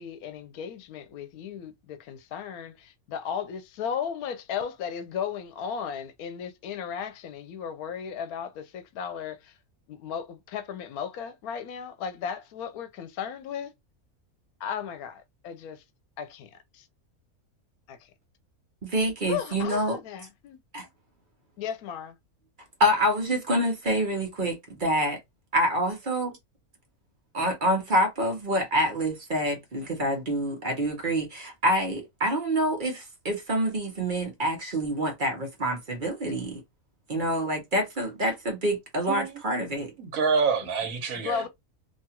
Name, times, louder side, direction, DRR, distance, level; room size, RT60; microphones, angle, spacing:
voice 1, 0.0-9.5 9.9-13.7 14.6-15.8 16.2-16.9 17.9-18.0 19.3-20.6 21.6-22.1 41.2-41.5, left 7 dB, 85° left, 1.1 m, -35 dB
voice 2, 18.8-20.0 20.7-20.8 22.8-25.2 25.5-26.4 27.3-36.6 37.1-39.9, equal, 40° right, 0.9 m, -27 dB
voice 3, 40.0-41.5, right 5 dB, 70° right, 1.2 m, -27 dB
2.8 x 2.3 x 2.8 m
omnidirectional pair, 1.5 m